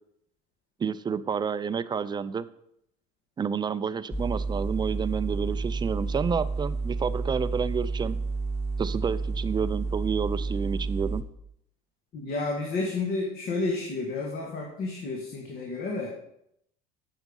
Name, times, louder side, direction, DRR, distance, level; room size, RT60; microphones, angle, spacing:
voice 1, 0.8-2.4 3.4-8.2 8.8-11.2, right 6 dB, 25° right, 15 dB, 0.5 m, -29 dB
sound 1, 4.1-11.2, right 3 dB, 10° left, 0.9 m, -30 dB
voice 2, 12.1-16.1, left 3 dB, 55° left, 0 dB, 2.0 m, -31 dB
9.0 x 6.5 x 5.4 m, 0.75 s
supercardioid pair, 95°, 19 cm